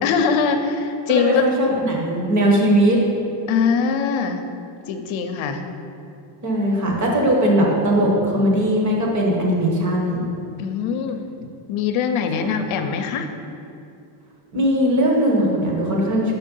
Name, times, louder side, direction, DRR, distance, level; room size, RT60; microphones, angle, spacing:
voice 1, 0.0-1.4 3.5-4.4 4.9-5.6 8.2-8.4 10.6-13.3, left 6 dB, 70° left, 7 dB, 0.7 m, -22 dB
voice 2, 1.1-3.0 6.4-10.2 12.4-12.5 14.5-16.3, equal, 35° right, -1 dB, 1.2 m, -19 dB
6.5 x 4.3 x 5.3 m, 2.6 s
cardioid pair, 160°, 49 cm